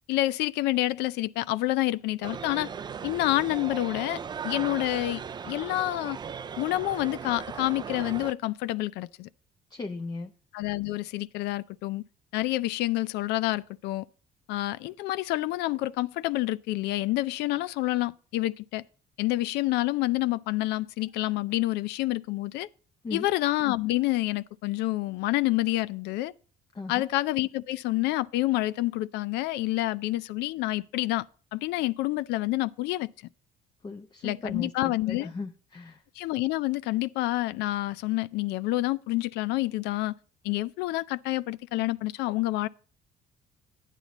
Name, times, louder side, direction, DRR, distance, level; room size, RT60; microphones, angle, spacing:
voice 1, 0.1-2.7 3.0-6.2 6.6-9.3 10.5-12.0 12.3-14.1 14.5-18.8 19.2-22.7 23.1-26.3 26.9-31.3 31.5-33.1 34.2-35.3 36.2-40.2 40.4-42.7, left 17 dB, 90° left, 0.5 m, -28 dB
sound 1, 2.2-8.3, right 7 dB, 25° right, 0.3 m, -38 dB
voice 2, 9.7-10.3 23.0-23.3 26.7-27.1 33.8-36.0, left 3 dB, 25° left, 0.7 m, -37 dB
10.0 x 9.0 x 4.0 m
cardioid pair, 110°, 17 cm